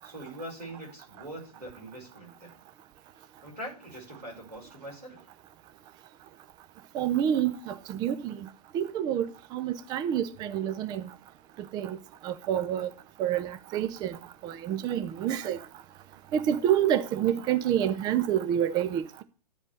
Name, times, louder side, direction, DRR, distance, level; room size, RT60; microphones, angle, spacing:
voice 1, 0.0-2.6 3.1-5.3, right 1 dB, 90° right, 5.7 m, -43 dB
voice 2, 6.9-8.4 8.7-9.3 9.5-11.1 11.7-12.0 12.2-12.9 13.2-14.2 14.4-15.6 16.3-19.2, right 10 dB, 20° right, 0.6 m, -28 dB
10.5 x 5.2 x 8.4 m
figure-of-eight pair, 105°, 20 cm